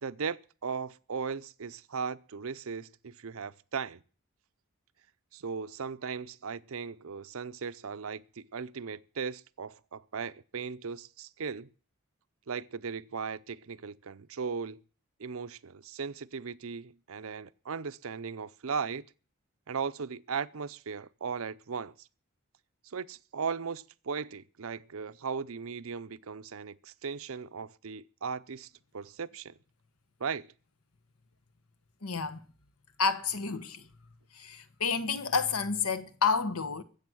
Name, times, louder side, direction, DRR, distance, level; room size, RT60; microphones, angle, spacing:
voice 1, 0.0-4.0 5.3-11.7 12.5-14.8 15.2-19.1 19.7-22.1 22.8-29.5 30.2-30.5, right 5 dB, 70° right, 0.6 m, -37 dB
voice 2, 32.0-32.4 33.0-33.9 34.3-36.8, left 5 dB, 80° left, 1.3 m, -30 dB
21.5 x 7.9 x 6.2 m
head